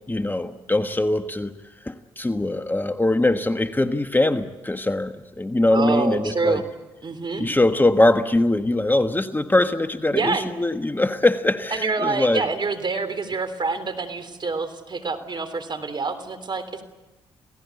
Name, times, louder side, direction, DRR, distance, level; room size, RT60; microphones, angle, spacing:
voice 1, 0.1-1.5 1.8-6.6 7.4-12.5, left 2 dB, 15° left, 8 dB, 1.4 m, -22 dB
voice 2, 5.7-6.6 7.0-7.5 10.1-10.5 11.7-16.8, right 4 dB, 45° right, 11 dB, 3.4 m, -26 dB
28.5 x 17.5 x 8.3 m, 1.1 s
supercardioid pair, 50°, 11 cm